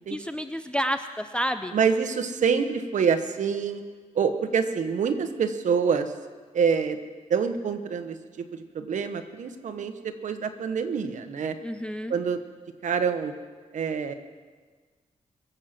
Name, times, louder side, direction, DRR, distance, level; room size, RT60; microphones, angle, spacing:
voice 1, 0.1-1.8 11.6-12.1, equal, 10° left, 9 dB, 0.5 m, -30 dB
voice 2, 1.7-3.8 4.1-6.1 6.5-7.0 7.3-11.5 12.1-12.4 12.8-13.3 13.7-14.1, right 6 dB, 70° right, 8 dB, 1.1 m, -26 dB
22.5 x 8.0 x 6.0 m, 1.5 s
wide cardioid pair, 125°, 13 cm